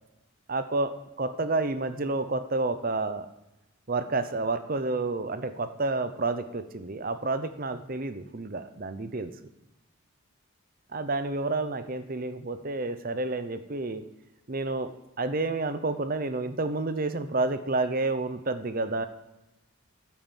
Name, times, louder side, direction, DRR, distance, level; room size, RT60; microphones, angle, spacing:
voice 1, 0.5-3.3 3.9-9.3 10.9-14.0 14.5-14.9 15.2-19.1, right 3 dB, 40° right, 11 dB, 0.7 m, -30 dB
9.3 x 9.0 x 7.5 m, 0.95 s
head